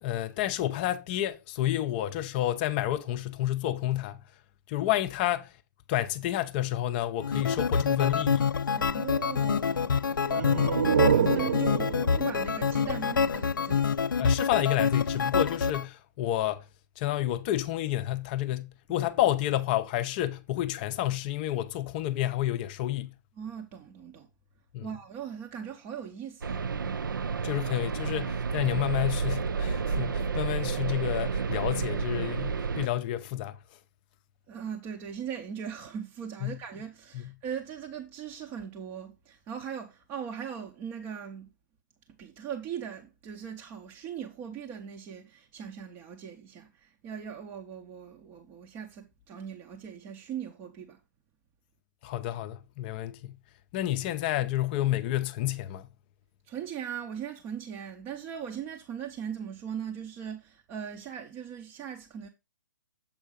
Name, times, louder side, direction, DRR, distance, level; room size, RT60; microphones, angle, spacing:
voice 1, 0.0-4.2 4.7-5.5 5.9-8.5 10.4-10.7 14.2-16.6 17.0-23.1 24.7-24.9 27.4-33.6 36.4-36.6 37.1-37.3 52.0-53.4 53.7-55.9, left 13 dB, 30° left, 0.5 m, -30 dB
sound 1, 7.2-15.8, left 6 dB, 90° left, 0.4 m, -27 dB
voice 2, 8.8-10.5 10.9-13.9 18.9-19.1 23.4-24.3 24.8-26.7 34.5-41.5 42.2-51.0 56.5-62.3, right 8 dB, 20° right, 0.6 m, -39 dB
sound 2, 10.2-13.8, right 7 dB, 55° right, 0.8 m, -28 dB
sound 3, 26.4-32.9, right 5 dB, 85° right, 0.4 m, -30 dB
7.4 x 4.5 x 5.0 m
hypercardioid pair, 145°, 10 cm